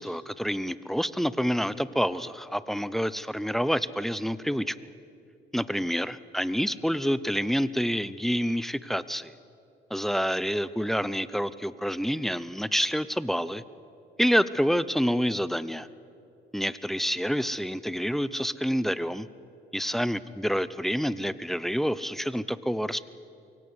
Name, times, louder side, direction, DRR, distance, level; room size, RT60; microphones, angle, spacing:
voice 1, 0.0-4.7 5.5-9.3 9.9-13.6 14.2-15.9 16.5-19.3 19.7-23.1, equal, ahead, 16 dB, 0.7 m, -28 dB
23.0 x 17.0 x 9.7 m, 2.6 s
cardioid pair, 90°, 20 cm